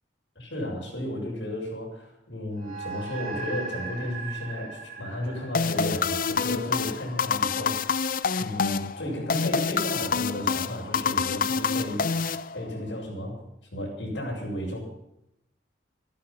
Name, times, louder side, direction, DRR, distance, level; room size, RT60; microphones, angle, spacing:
voice 1, 0.4-8.1 8.4-13.4 13.7-14.8, left 1 dB, 80° left, -4 dB, 7.1 m, -34 dB
sound 1, 2.6-7.2, right 4 dB, 45° right, 5.9 m, -39 dB
sound 2, 5.5-12.9, left 5 dB, 50° left, 0.6 m, -27 dB
14.0 x 13.5 x 7.4 m, 0.81 s
head